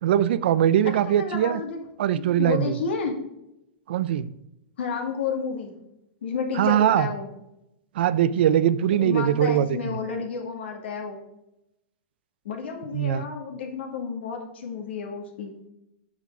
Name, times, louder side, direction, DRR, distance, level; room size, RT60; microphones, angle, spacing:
voice 1, 0.0-1.6 2.0-2.8 3.9-4.3 6.6-7.1 8.0-10.0 12.9-13.2, right 10 dB, 65° right, 16 dB, 0.5 m, -21 dB
voice 2, 0.8-1.9 2.1-3.2 4.8-5.7 6.2-7.3 8.9-11.2 12.4-15.5, left 5 dB, 85° left, 2 dB, 2.2 m, -31 dB
8.4 x 6.6 x 3.7 m, 0.86 s
supercardioid pair, 160°, 6 cm